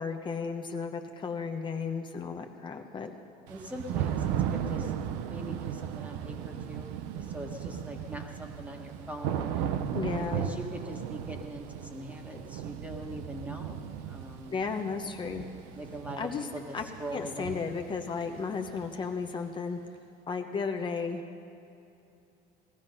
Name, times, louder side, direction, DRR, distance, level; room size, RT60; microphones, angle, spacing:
voice 1, 0.0-3.1 9.9-10.4 14.5-15.4 16.2-16.5 16.7-16.8 17.1-19.8 20.3-21.2, left 5 dB, 30° left, 4 dB, 0.9 m, -34 dB
voice 2, 3.5-4.9 5.3-9.8 10.3-14.6 15.7-17.6, equal, 10° right, 2 dB, 1.6 m, -42 dB
Thunder / Rain, 3.5-19.2, right 9 dB, 90° right, 0.8 m, -36 dB
18.0 x 13.5 x 5.5 m, 2.7 s
cardioid pair, 135°, 17 cm